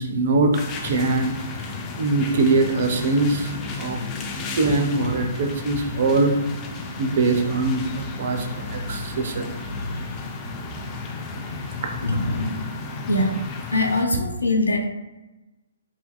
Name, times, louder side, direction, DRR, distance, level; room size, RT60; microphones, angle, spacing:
voice 1, 0.0-1.4 2.0-4.0 4.5-6.3 7.0-9.5 9.8-9.9 11.8-12.0, right 3 dB, 50° right, 4 dB, 0.6 m, -22 dB
sound 1, 0.5-14.0, left 3 dB, 25° left, 0.4 m, -34 dB
voice 2, 12.0-12.7 13.1-13.4 13.7-14.9, left 2 dB, 80° left, 3 dB, 0.6 m, -22 dB
4.3 x 2.7 x 2.3 m, 1.1 s
figure-of-eight pair, 130°, 0 cm